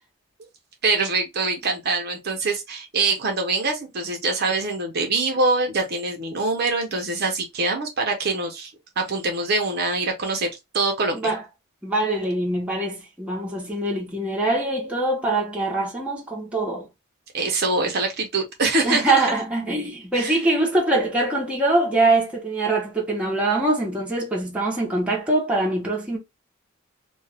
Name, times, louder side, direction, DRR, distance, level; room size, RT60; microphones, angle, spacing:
voice 1, 0.8-8.7 9.0-10.5 10.7-11.3 17.3-19.2 20.1-20.3, right 3 dB, 50° right, 0.7 m, -24 dB
voice 2, 11.8-16.9 18.8-26.2, right 2 dB, 5° right, 0.9 m, -23 dB
2.4 x 2.3 x 3.3 m
head